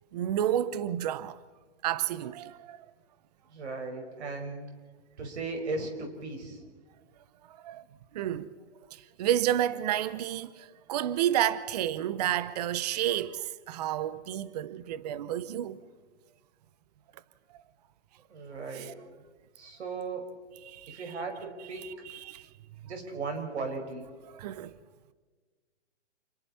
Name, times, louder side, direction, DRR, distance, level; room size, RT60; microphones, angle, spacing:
voice 1, 0.1-1.4 1.8-2.8 7.6-7.8 8.1-8.5 9.2-15.8 18.7-18.9 20.6-21.0 21.8-22.5 24.3-24.7, right 11 dB, 35° right, 0.8 m, -30 dB
voice 2, 3.5-4.6 5.2-6.6 18.3-18.9 19.6-20.3 20.9-21.9 22.8-24.1, right 3 dB, 70° right, 5.3 m, -36 dB
28.5 x 22.5 x 4.3 m
hypercardioid pair, 155°, 35 cm